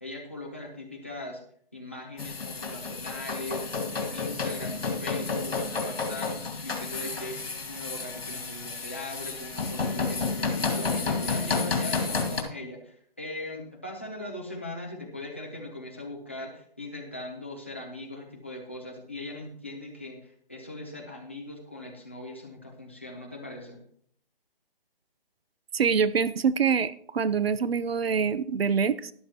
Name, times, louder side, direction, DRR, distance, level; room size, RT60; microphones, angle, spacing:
voice 1, 0.0-1.4 1.7-7.4 7.7-23.8, left 2 dB, 15° left, -1 dB, 0.7 m, -40 dB
sound 1, 2.2-12.4, left 4 dB, 75° left, 2.1 m, -31 dB
voice 2, 25.7-29.1, right 6 dB, 85° right, 16 dB, 0.7 m, -25 dB
12.5 x 11.0 x 2.9 m, 0.63 s
hypercardioid pair, 180°, 29 cm